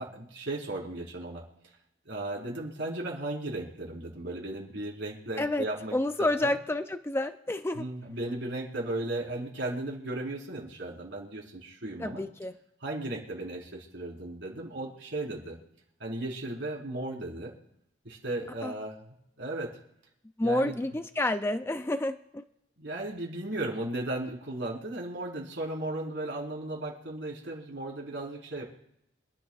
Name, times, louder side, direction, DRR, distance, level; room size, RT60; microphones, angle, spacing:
voice 1, 0.0-1.4 2.0-6.5 7.7-12.2 12.8-15.6 16.0-17.5 18.0-19.0 19.4-19.8 20.4-20.8 22.8-28.6, right 2 dB, 70° right, -2 dB, 4.4 m, -36 dB
voice 2, 5.9-7.8 12.0-12.5 18.6-18.7 20.4-22.4, left 1 dB, 15° left, 9 dB, 0.4 m, -29 dB
27.5 x 11.0 x 2.4 m, 0.80 s
head